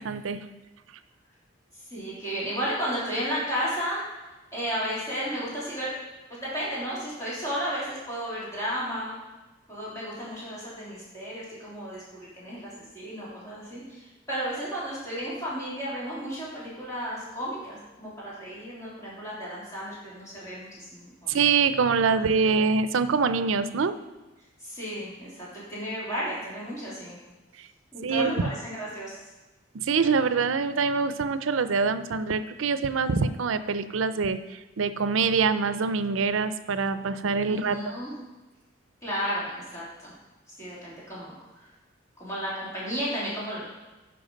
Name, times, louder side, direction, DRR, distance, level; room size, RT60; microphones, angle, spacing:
voice 1, 0.0-0.4 21.3-24.0 28.0-28.4 29.7-37.8, right 5 dB, 85° right, 12 dB, 0.5 m, -25 dB
voice 2, 1.7-4.0 4.5-5.9 6.3-9.1 9.7-21.3 22.1-22.6 24.6-27.2 27.9-29.2 37.5-38.1 39.0-40.1 40.6-41.7 42.2-43.6, equal, 15° left, -8 dB, 3.2 m, -33 dB
10.0 x 6.0 x 5.2 m, 1.1 s
head